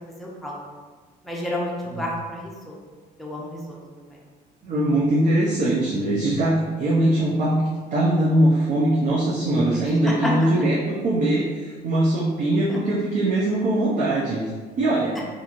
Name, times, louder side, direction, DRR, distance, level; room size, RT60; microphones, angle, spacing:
voice 1, 0.2-0.6 1.2-2.8 3.2-4.2 10.0-10.3, left 1 dB, ahead, -5 dB, 0.6 m, -30 dB
voice 2, 4.6-14.5 14.8-15.2, right 1 dB, 50° right, -5 dB, 0.5 m, -21 dB
2.9 x 2.5 x 2.5 m, 1.5 s
cardioid pair, 110°, 17 cm